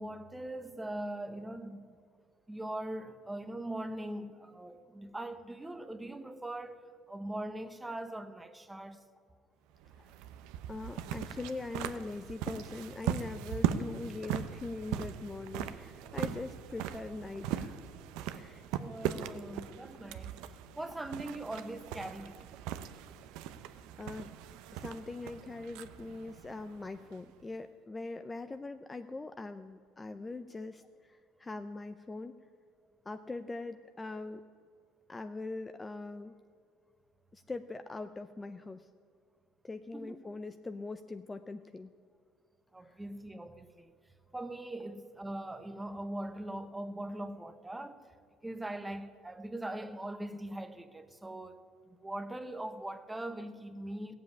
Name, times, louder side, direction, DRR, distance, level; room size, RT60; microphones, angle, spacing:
voice 1, 0.0-2.0 2.5-9.0 11.9-12.1 18.8-20.4 20.8-22.5 39.9-40.2 42.7-44.0 44.3-48.1 48.4-51.6 52.0-54.2, right 1 dB, 10° right, 0.9 m, -41 dB
sound 1, 9.7-27.4, right 10 dB, 80° right, 0.7 m, -39 dB
voice 2, 10.7-17.8 18.3-18.6 24.0-24.3 24.7-32.4 33.1-34.4 35.1-36.3 37.3-38.9 39.6-41.9 42.8-43.0, left 3 dB, 15° left, 0.5 m, -42 dB
15.5 x 7.5 x 9.6 m
cardioid pair, 120°, 0 cm